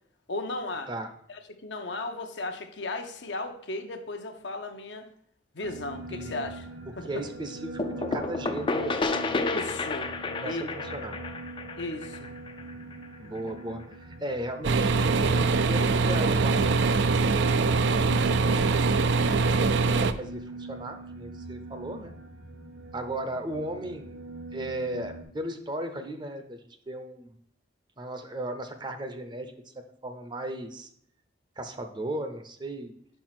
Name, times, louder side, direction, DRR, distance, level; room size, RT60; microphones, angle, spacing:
voice 1, 0.3-0.9 1.3-5.1 5.5-6.7 7.0-7.2 9.3-10.1 10.4-10.7 11.8-12.3, left 2 dB, 70° left, 6 dB, 0.8 m, -35 dB
sound 1, 5.6-25.2, right 2 dB, 85° right, 1.4 m, -42 dB
voice 2, 6.1-6.5 7.0-9.2 10.4-11.2 13.2-22.1 22.9-24.2 24.5-26.6 26.9-27.3 28.0-29.7 30.0-30.9 31.6-32.9, right 1 dB, 25° right, 8 dB, 0.6 m, -36 dB
sound 2, 7.8-13.4, left 3 dB, 25° left, 0.4 m, -31 dB
sound 3, 14.6-20.1, right 4 dB, 70° right, 0.4 m, -23 dB
5.4 x 4.5 x 5.8 m, 0.67 s
head